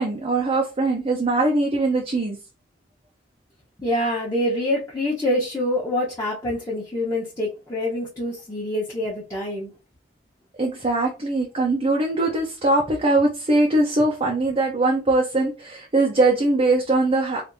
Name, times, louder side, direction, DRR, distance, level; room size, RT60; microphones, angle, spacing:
voice 1, 0.0-2.4 10.6-17.4, right 2 dB, 35° right, 0.6 m, -21 dB
voice 2, 3.8-9.7, left 1 dB, 15° left, 0.9 m, -26 dB
3.4 x 2.5 x 2.6 m
head